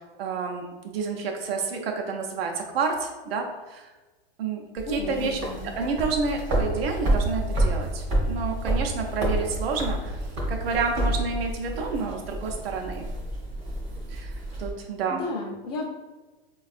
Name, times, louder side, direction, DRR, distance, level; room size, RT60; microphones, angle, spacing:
voice 1, 0.2-3.9 4.4-10.2 10.5-13.1 14.1-15.2, right 4 dB, 85° right, 2 dB, 0.6 m, -30 dB
sound 1, 4.8-14.7, right 1 dB, 20° right, 0.4 m, -29 dB
voice 2, 4.9-5.7 15.1-15.9, left 2 dB, 45° left, -2 dB, 0.5 m, -32 dB
4.2 x 2.3 x 2.4 m, 1.2 s
supercardioid pair, 165°, 29 cm